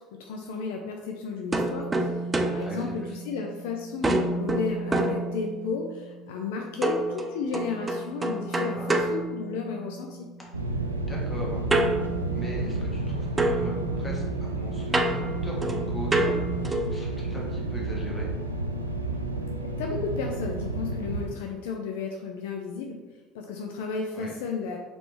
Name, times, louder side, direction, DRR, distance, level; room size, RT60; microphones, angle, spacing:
voice 1, 0.1-10.3 19.8-23.0 23.3-24.8, left 4 dB, 65° left, 2 dB, 0.4 m, -33 dB
sound 1, 1.5-3.6 4.0-5.9 6.8-10.0 11.7-13.1 13.4-17.0, right 1 dB, 20° right, 0.4 m, -28 dB
voice 2, 2.6-3.0 8.7-9.0 11.1-11.6 12.3-18.3 24.1-24.4, right 1 dB, 15° left, -3 dB, 1.3 m, -39 dB
sound 2, 10.5-21.3, right 2 dB, 85° right, 0.3 m, -31 dB
3.9 x 3.3 x 3.1 m, 1.3 s
figure-of-eight pair, 60°, 0 cm